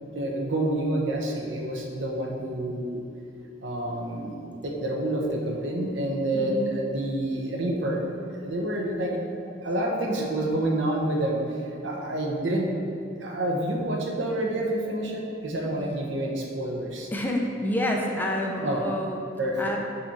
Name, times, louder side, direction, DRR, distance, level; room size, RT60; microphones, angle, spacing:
voice 1, 0.1-3.0 3.6-9.1 9.6-11.4 11.8-12.7 13.2-17.1 18.6-18.8 19.4-19.7, right 1 dB, 75° right, 0 dB, 1.0 m, -28 dB
voice 2, 17.1-19.2 19.6-19.8, left 1 dB, 10° left, 0 dB, 0.6 m, -28 dB
5.7 x 4.3 x 5.8 m, 2.7 s
head